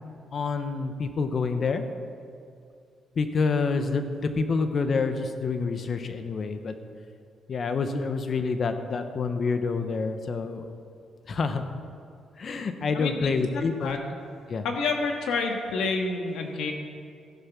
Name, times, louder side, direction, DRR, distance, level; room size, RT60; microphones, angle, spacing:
voice 1, 0.3-1.8 3.2-6.7 7.5-10.7 11.3-11.7 12.4-14.0 14.5-14.7, left 4 dB, 50° left, 8 dB, 1.0 m, -27 dB
voice 2, 12.9-14.1 14.6-16.7, left 4 dB, 80° left, 3 dB, 1.7 m, -29 dB
14.0 x 8.1 x 6.1 m, 2.3 s
cardioid pair, 90°, 0 cm